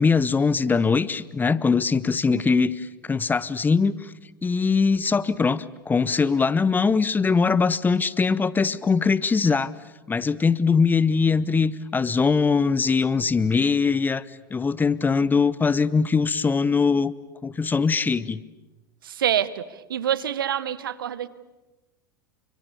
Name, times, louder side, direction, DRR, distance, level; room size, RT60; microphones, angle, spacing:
voice 1, 0.0-4.1 4.4-9.7 10.1-14.2 14.5-17.1 17.4-18.4, left 5 dB, 15° left, 19 dB, 0.9 m, -21 dB
voice 2, 19.0-19.6 19.9-21.3, right 10 dB, 75° right, 17 dB, 1.2 m, -26 dB
29.5 x 24.5 x 7.0 m, 1.1 s
hypercardioid pair, 90°, 11 cm